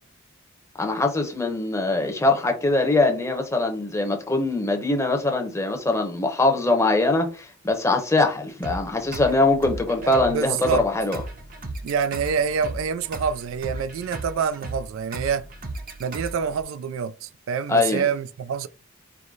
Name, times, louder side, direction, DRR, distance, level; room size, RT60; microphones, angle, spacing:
voice 1, 0.8-11.2 17.7-18.0, left 2 dB, 15° left, 0.8 m, -22 dB
sound 1, 8.6-16.6, right 2 dB, 45° right, 0.8 m, -36 dB
voice 2, 10.0-10.8 11.8-15.4 16.0-18.7, right 6 dB, 75° right, 0.3 m, -26 dB
4.7 x 2.0 x 3.8 m
head